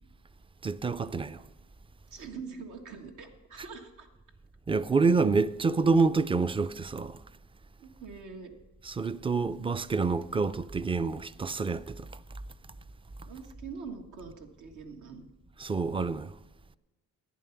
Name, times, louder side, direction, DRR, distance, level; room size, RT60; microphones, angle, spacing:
voice 1, 0.6-1.4 4.7-7.2 8.8-12.1 15.6-16.3, right 4 dB, 20° right, 0.4 m, -27 dB
voice 2, 2.1-4.1 7.8-8.5 9.5-9.6 13.3-15.2, right 5 dB, 80° right, 1.7 m, -44 dB
11.0 x 9.2 x 5.8 m
cardioid pair, 90°, 30 cm